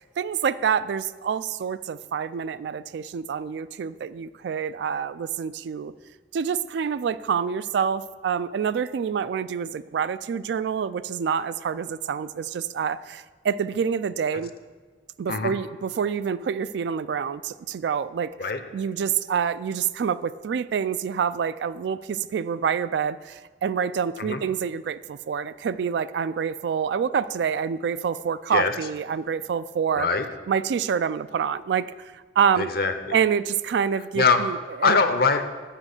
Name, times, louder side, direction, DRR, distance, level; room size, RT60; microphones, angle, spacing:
voice 1, 0.0-5.9 6.3-14.5 15.2-18.3 18.7-30.1 30.5-32.7 33.1-35.0, right 7 dB, 75° right, 15 dB, 0.3 m, -27 dB
voice 2, 32.6-33.1 34.2-34.4 34.8-35.4, left 4 dB, 60° left, 8 dB, 0.7 m, -22 dB
7.4 x 6.1 x 6.5 m, 1.5 s
head